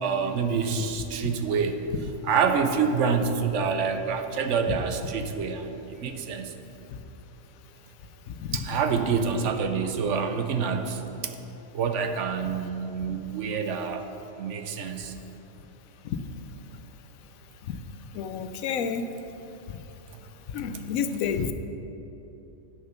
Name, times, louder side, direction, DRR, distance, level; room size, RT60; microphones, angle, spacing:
voice 1, 0.0-1.8 2.2-6.5 8.5-11.3 11.7-14.1 14.4-15.1, right 6 dB, 70° right, 7 dB, 1.0 m, -27 dB
voice 2, 8.3-8.6 17.7-17.8 18.1-19.0 20.5-21.5, left 7 dB, 90° left, 9 dB, 1.0 m, -29 dB
9.8 x 6.6 x 5.7 m, 3.0 s
omnidirectional pair, 1.4 m